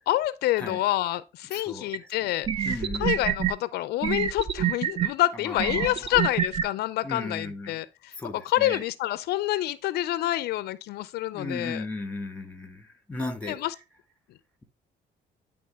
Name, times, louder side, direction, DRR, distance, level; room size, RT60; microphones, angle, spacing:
voice 1, 0.0-8.1 8.4-11.9 13.5-13.7, left 15 dB, 70° left, 0.4 m, -28 dB
voice 2, 1.5-2.1 2.6-3.2 5.5-5.9 7.0-7.8 8.2-8.8 11.3-13.6, left 2 dB, 5° left, 1.6 m, -36 dB
sound 1, 1.9-2.0 2.4-3.5 4.0-5.1 5.6-6.6, right 9 dB, 35° right, 0.5 m, -26 dB
9.5 x 3.7 x 3.4 m
cardioid pair, 110°, 17 cm